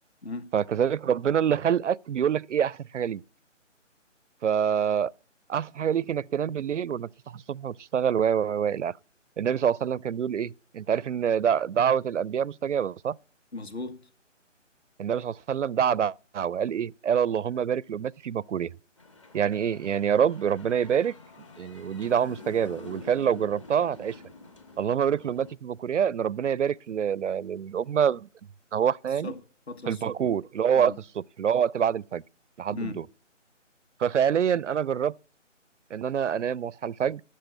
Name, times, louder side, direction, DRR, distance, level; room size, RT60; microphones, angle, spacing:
voice 1, 0.5-3.2 4.4-5.1 5.5-8.9 9.4-13.2 15.0-18.7 19.3-21.1 21.6-24.2 24.8-28.3 28.7-29.3 29.9-30.9 31.4-32.2 32.6-32.9 34.0-35.1 35.9-37.2, right 8 dB, 70° right, 0.5 m, -26 dB
voice 2, 13.5-14.1 29.1-30.2 30.7-31.0 32.7-33.0, left 3 dB, 55° left, 2.0 m, -38 dB
sound 1, 19.0-25.5, left 3 dB, 25° left, 1.4 m, -47 dB
13.0 x 6.6 x 8.0 m
figure-of-eight pair, 165°, 38 cm